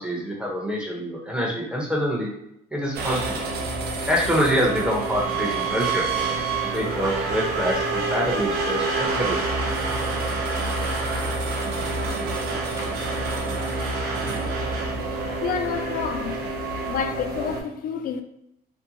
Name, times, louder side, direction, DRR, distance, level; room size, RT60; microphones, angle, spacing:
voice 1, 0.0-2.3 2.7-3.4 4.1-6.4 6.7-9.4, equal, 5° right, 0.6 m, -26 dB
sound 1, 2.9-17.6, right 3 dB, 65° right, 0.5 m, -27 dB
voice 2, 15.4-16.4 16.9-18.2, left 7 dB, 60° left, 0.4 m, -29 dB
2.5 x 2.1 x 2.7 m
cardioid pair, 110°, 17 cm